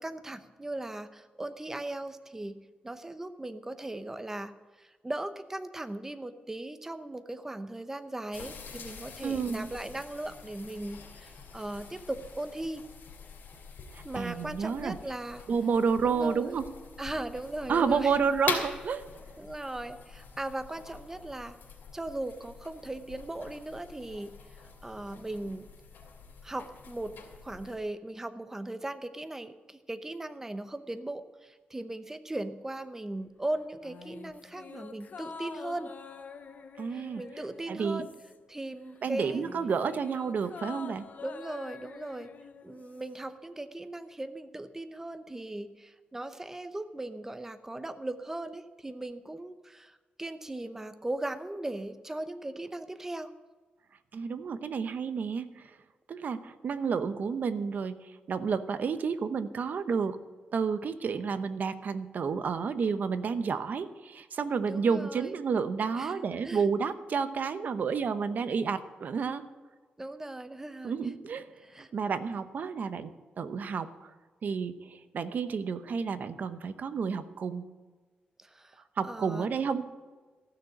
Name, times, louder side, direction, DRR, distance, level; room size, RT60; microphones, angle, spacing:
voice 1, 0.0-4.5 4.8-12.8 14.0-15.5 16.0-16.6 17.0-18.2 19.4-21.6 21.9-24.3 24.8-25.7 26.4-27.2 27.4-35.9 36.9-38.1 38.5-39.4 41.2-42.3 42.6-53.3 64.7-65.4 65.9-66.6 70.0-70.9 71.6-71.9 78.4-79.5, right 1 dB, 15° right, 10 dB, 0.8 m, -38 dB
sound 1, 8.3-27.8, left 5 dB, 80° left, 3.0 m, -44 dB
voice 2, 9.2-9.7 13.9-15.0 15.5-16.7 17.7-19.0 36.8-37.2 37.7-38.1 39.0-41.1 54.1-55.7 56.1-60.2 60.5-69.5 70.8-71.5 71.9-74.1 74.4-77.7 79.0-79.8, right 5 dB, 55° right, 11 dB, 0.8 m, -30 dB
sound 2, 33.8-38.6 38.9-43.2 43.5-43.6, left 5 dB, 50° left, 0.9 m, -47 dB
14.5 x 6.6 x 8.9 m, 1.4 s
wide cardioid pair, 115°, 3 cm